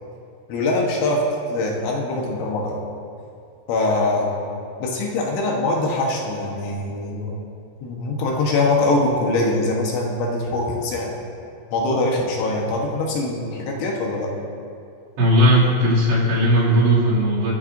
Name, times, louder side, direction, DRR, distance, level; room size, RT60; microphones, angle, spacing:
voice 1, 0.5-1.2 1.5-2.8 3.7-4.3 4.8-7.4 7.8-11.1 11.7-14.3, left 2 dB, 75° left, -2 dB, 3.5 m, -23 dB
voice 2, 15.2-17.5, equal, 65° right, -8 dB, 4.8 m, -17 dB
25.0 x 9.4 x 2.7 m, 2.5 s
omnidirectional pair, 5.7 m